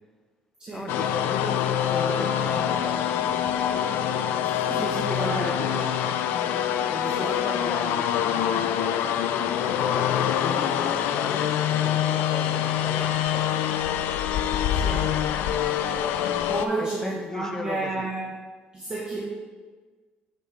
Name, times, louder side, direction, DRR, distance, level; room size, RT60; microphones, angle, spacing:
voice 1, 0.7-3.5 4.7-6.2 6.9-13.9 16.8-18.1, left 2 dB, 15° left, 4 dB, 0.7 m, -37 dB
sound 1, 0.9-16.7, left 9 dB, 75° left, 0.4 m, -25 dB
voice 2, 4.5-5.8 7.2-7.4 14.7-15.1 16.5-18.3 18.7-19.2, right 3 dB, 25° right, -6 dB, 1.5 m, -31 dB
7.7 x 6.6 x 3.5 m, 1.4 s
cardioid pair, 145°, 4 cm